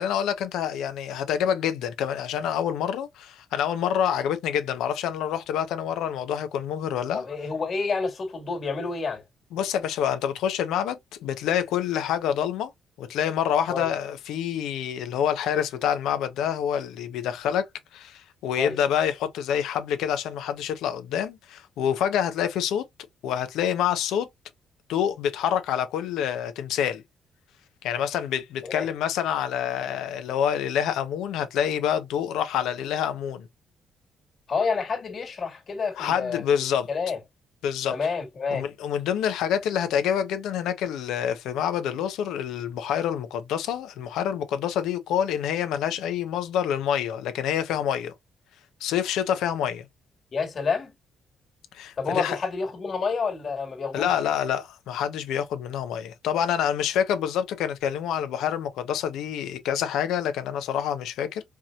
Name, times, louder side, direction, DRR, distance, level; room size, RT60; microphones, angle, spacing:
voice 1, 0.0-7.2 9.5-12.7 13.0-17.6 17.9-22.9 23.2-24.3 24.9-27.0 27.8-33.5 36.0-36.9 37.6-38.0 38.5-48.1 48.8-49.9 51.7-52.4 53.9-61.4, left 9 dB, 90° left, 0.8 m, -27 dB
voice 2, 7.1-9.2 13.7-13.9 18.6-18.8 28.6-28.9 34.5-37.2 37.9-38.7 50.3-50.9 52.0-54.2, left 4 dB, 45° left, 1.9 m, -29 dB
4.7 x 2.9 x 2.4 m
cardioid pair, 90°, 0 cm